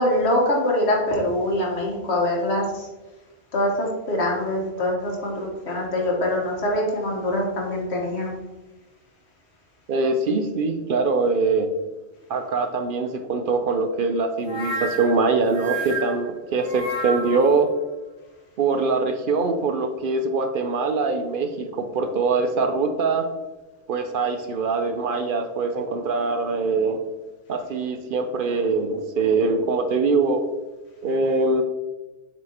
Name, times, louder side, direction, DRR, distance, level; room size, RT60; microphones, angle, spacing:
voice 1, 0.0-2.9 3.5-8.4, left 1 dB, 80° left, -1 dB, 1.6 m, -24 dB
voice 2, 9.9-11.7 12.3-17.7 18.6-23.3 23.9-27.0 27.5-30.4 31.0-31.6, right 3 dB, 60° right, 7 dB, 0.7 m, -23 dB
sound 1, 14.5-17.6, right 2 dB, 50° left, 1.8 m, -31 dB
7.6 x 4.3 x 2.9 m, 1.1 s
omnidirectional pair, 1.1 m